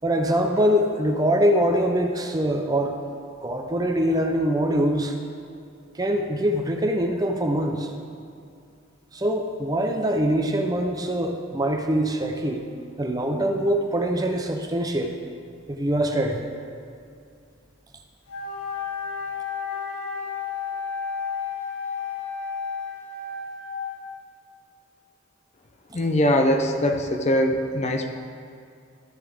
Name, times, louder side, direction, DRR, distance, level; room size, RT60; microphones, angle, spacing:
voice 1, 0.0-3.0 3.4-5.1 6.0-7.9 9.1-12.6 13.0-15.2 15.7-16.5, equal, 20° right, 3 dB, 0.6 m, -23 dB
Wind instrument woodwind instrument, 18.3-24.2, left 5 dB, 85° left, 1.3 m, -32 dB
voice 2, 25.9-28.2, left 1 dB, 35° left, 5 dB, 0.6 m, -22 dB
14.0 x 6.9 x 3.5 m, 2.4 s
head